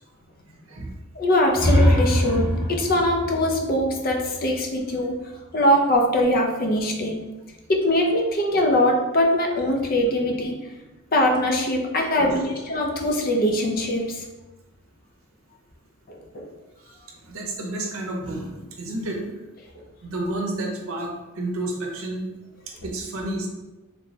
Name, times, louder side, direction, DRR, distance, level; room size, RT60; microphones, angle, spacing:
voice 1, 1.2-5.1 5.5-7.2 7.7-10.6 11.1-14.2 16.1-16.5, left 1 dB, 40° left, 1 dB, 0.5 m, -22 dB
sound 1, 1.5-5.4, equal, 10° right, 0.5 m, -23 dB
voice 2, 12.1-12.5 17.2-19.4 20.0-22.3 22.8-23.5, right 1 dB, 70° right, 1 dB, 0.7 m, -30 dB
3.2 x 3.1 x 2.7 m, 1.1 s
head